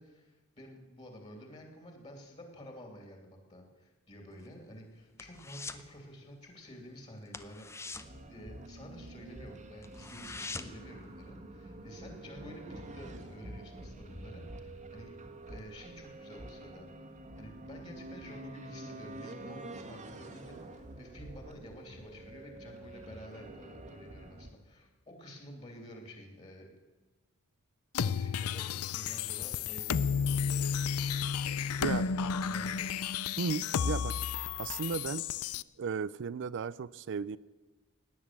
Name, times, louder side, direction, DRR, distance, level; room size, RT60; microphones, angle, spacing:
voice 1, 0.0-15.1 15.4-26.7 28.0-31.0 31.9-32.9, equal, 30° left, 3 dB, 2.8 m, -50 dB
sound 1, 4.3-5.9 6.2-6.5 6.8-6.9 7.3-9.1 9.5-9.6 9.8-10.9 11.3-11.4, left 3 dB, 10° left, 0.7 m, -44 dB
sound 2, 8.0-24.5, right 1 dB, 35° right, 1.4 m, -47 dB
sound 3, 27.9-35.6, left 6 dB, 70° left, 0.5 m, -32 dB
voice 2, 33.4-34.2 34.6-35.3 35.8-37.4, right 5 dB, 55° right, 18 dB, 0.4 m, -35 dB
17.0 x 10.0 x 7.5 m, 1.2 s
head